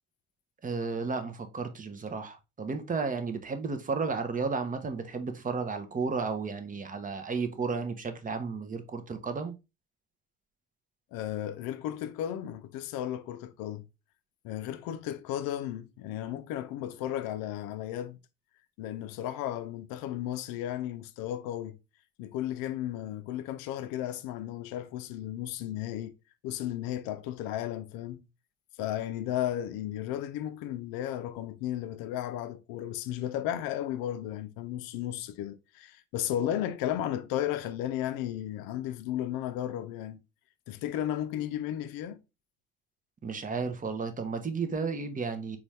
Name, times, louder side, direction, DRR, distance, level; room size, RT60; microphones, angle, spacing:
voice 1, 0.6-9.5 43.2-45.6, right 4 dB, 20° right, 0.7 m, -33 dB
voice 2, 11.1-13.9 14.4-18.2 18.8-21.8 22.2-26.1 26.4-28.3 28.8-40.2 40.7-42.2, left 12 dB, 60° left, 0.6 m, -34 dB
4.0 x 2.4 x 3.2 m
hypercardioid pair, 60°, 40 cm